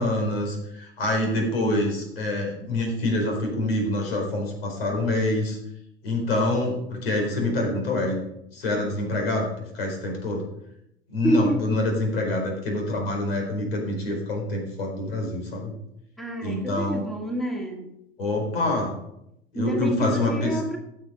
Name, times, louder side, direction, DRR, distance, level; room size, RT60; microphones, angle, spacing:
voice 1, 0.0-5.6 6.0-8.2 8.5-10.4 11.1-15.7 16.4-17.0 18.2-18.9 19.5-20.6, left 1 dB, 65° left, 1 dB, 4.5 m, -26 dB
voice 2, 1.4-1.9 11.2-11.7 16.2-17.9 19.5-20.8, right 1 dB, ahead, 2 dB, 1.9 m, -28 dB
15.5 x 6.8 x 5.2 m, 0.80 s
figure-of-eight pair, 80°, 32 cm